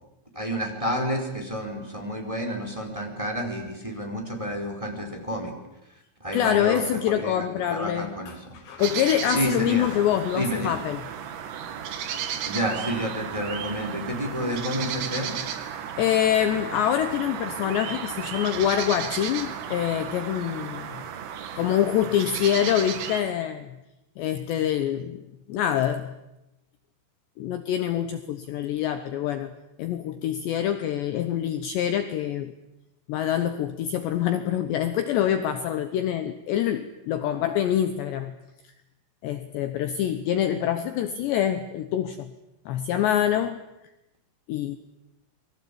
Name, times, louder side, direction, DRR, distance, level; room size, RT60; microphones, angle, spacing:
voice 1, 0.3-5.5 6.2-8.3 9.3-9.9 10.3-10.8 12.5-15.4, equal, 5° right, 3 dB, 4.3 m, -30 dB
voice 2, 6.3-11.0 16.0-21.0 21.6-23.8 24.2-25.2 25.5-26.1 27.4-29.5 29.8-32.5 33.1-38.4 39.2-42.3 42.7-43.6 44.5-44.8, left 10 dB, 70° left, 10 dB, 2.9 m, -25 dB
sound 1, 8.8-23.2, right 8 dB, 80° right, 4.8 m, -34 dB
29.5 x 22.5 x 8.7 m, 0.92 s
omnidirectional pair, 5.9 m